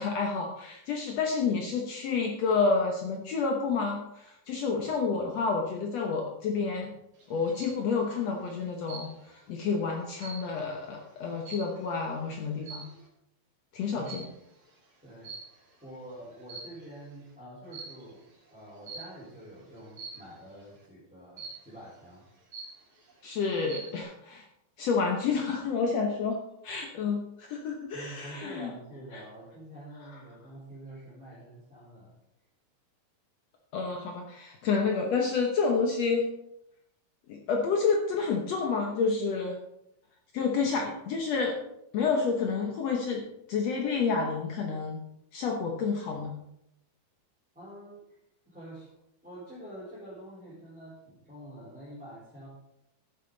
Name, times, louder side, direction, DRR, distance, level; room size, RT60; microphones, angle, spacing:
voice 1, 0.0-6.9 7.3-12.8 13.7-14.2 23.2-24.4 24.8-27.2 27.5-28.7 29.1-29.2 33.7-36.3 37.3-39.6 40.3-41.6 41.9-43.2 43.5-45.0 45.3-46.3, left 5 dB, 80° left, 1 dB, 1.4 m, -29 dB
sound 1, 7.2-7.8 8.9-9.4 9.8-12.0 12.6-13.0 14.0-14.4 15.2-15.8 16.3-17.0 17.7-18.1 18.9-19.3 20.0-20.4 21.4-21.8 22.2-22.3 22.5-23.1 23.5-24.0, right 4 dB, 40° right, 2.7 m, -44 dB
voice 2, 15.0-15.3 15.8-18.2 18.5-22.2 26.9-27.2 27.9-32.1 47.5-48.2 48.4-48.9 49.2-52.5, right 1 dB, ahead, -9 dB, 3.9 m, -46 dB
12.5 x 9.6 x 4.0 m, 0.83 s
omnidirectional pair, 4.6 m